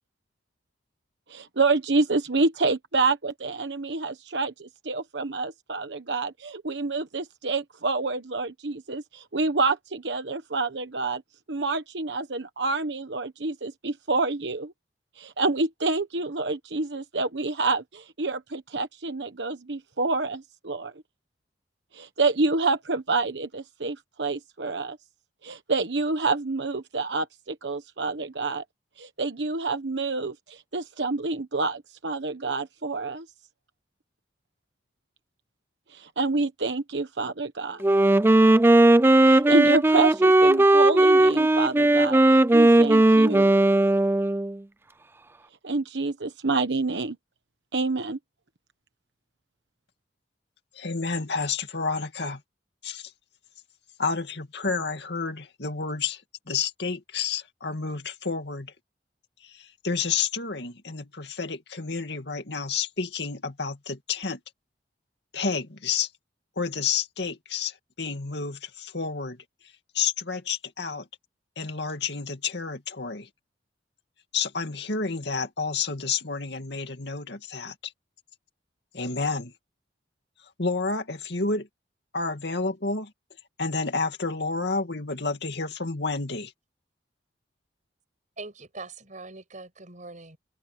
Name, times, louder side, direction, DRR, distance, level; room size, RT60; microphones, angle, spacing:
voice 1, 1.3-11.2 11.5-14.7 15.2-21.0 21.9-25.0 25.4-28.6 29.0-33.3 35.9-37.9 39.2-43.5 45.6-47.2 47.7-48.2, right 3 dB, 70° right, 1.2 m, -28 dB
Wind instrument woodwind instrument, 37.8-44.6, right 1 dB, 15° right, 0.4 m, -17 dB
voice 2, 50.7-52.4 52.8-53.1 54.0-56.2 56.5-58.7 59.4-64.4 65.3-66.1 66.6-69.4 69.9-71.1 71.6-73.3 74.3-77.9 78.9-79.5 80.6-81.7 82.1-83.1 83.6-86.5, left 5 dB, 65° left, 2.4 m, -30 dB
voice 3, 88.4-90.4, right 3 dB, 45° right, 7.4 m, -42 dB
head